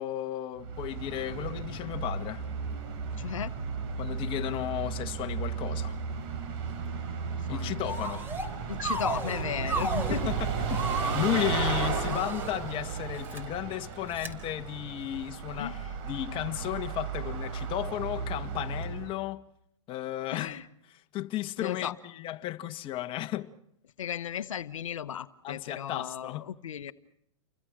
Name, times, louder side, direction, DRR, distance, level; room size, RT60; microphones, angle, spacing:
voice 1, 0.0-2.4 4.0-6.0 7.5-8.3 10.3-10.5 11.1-15.8 16.0-19.4 19.9-20.6 21.1-23.5 25.4-26.5, left 13 dB, 30° left, 1.6 m, -34 dB
Bus, 0.6-19.1, right 5 dB, 50° right, 5.3 m, -34 dB
voice 2, 3.2-3.5 7.3-8.0 8.7-10.3 15.5-15.9 20.3-20.7 21.6-21.9 24.0-26.9, left 9 dB, 85° left, 1.0 m, -36 dB
sound 1, 7.8-8.5 8.8-10.2 10.7-12.5 13.1-13.4 14.1-14.3, right 2 dB, 15° right, 3.7 m, -34 dB
30.0 x 24.5 x 6.3 m
hypercardioid pair, 125°, 16 cm